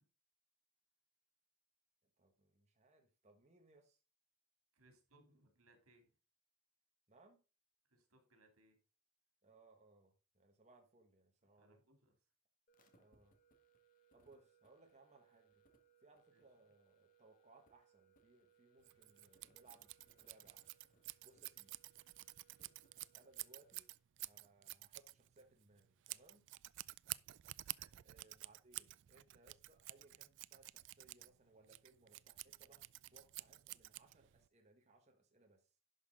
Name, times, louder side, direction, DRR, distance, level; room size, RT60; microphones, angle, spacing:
voice 1, 2.2-4.0 7.1-7.4 9.4-11.8 13.0-13.4 14.1-15.6 16.0-20.6 21.2-21.8 23.1-23.8 24.2-26.5 28.0-35.7, right 2 dB, 30° right, 2 dB, 1.5 m, -67 dB
voice 2, 4.7-6.1 7.9-8.8 11.5-12.2 16.3-16.4 27.6-27.9, right 2 dB, 85° right, 5 dB, 2.8 m, -70 dB
sound 1, 12.7-24.0, right 5 dB, 40° left, 1.6 m, -73 dB
Scissors, 18.8-34.5, right 19 dB, 55° right, 0.3 m, -51 dB
11.0 x 5.9 x 3.8 m, 0.33 s
head